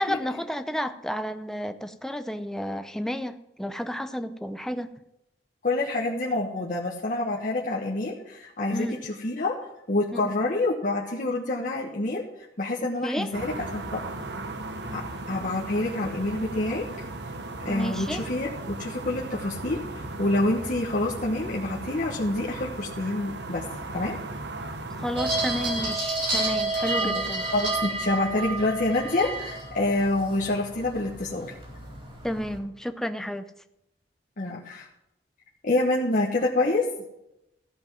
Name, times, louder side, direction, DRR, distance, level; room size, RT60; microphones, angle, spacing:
voice 1, 0.0-4.9 8.7-9.0 10.1-10.3 12.8-13.3 17.7-18.3 25.0-27.5 32.2-33.5, equal, 5° left, 10 dB, 0.5 m, -31 dB
voice 2, 5.6-9.5 9.9-12.2 12.6-14.0 14.9-16.8 17.6-23.6 23.9-24.2 27.0-27.2 27.5-31.5 34.4-34.9 35.6-36.9, left 2 dB, 50° left, -3 dB, 1.3 m, -27 dB
sound 1, 13.3-25.9, right 2 dB, 70° right, 1.0 m, -37 dB
sound 2, 25.2-32.6, right 2 dB, 35° right, 3.6 m, -30 dB
14.0 x 5.2 x 7.4 m, 0.86 s
head